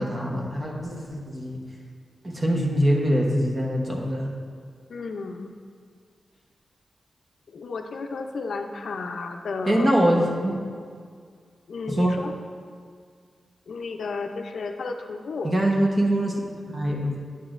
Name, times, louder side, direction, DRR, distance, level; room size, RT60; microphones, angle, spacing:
voice 1, 0.0-1.6 2.2-4.3 9.7-10.6 11.9-12.2 15.4-16.4 16.7-17.1, equal, 25° right, -1 dB, 1.0 m, -23 dB
voice 2, 4.9-5.5 7.5-9.9 11.7-12.3 13.7-15.5, left 4 dB, 70° left, 4 dB, 0.5 m, -33 dB
9.2 x 8.2 x 2.5 m, 2.1 s
wide cardioid pair, 165°, 0 cm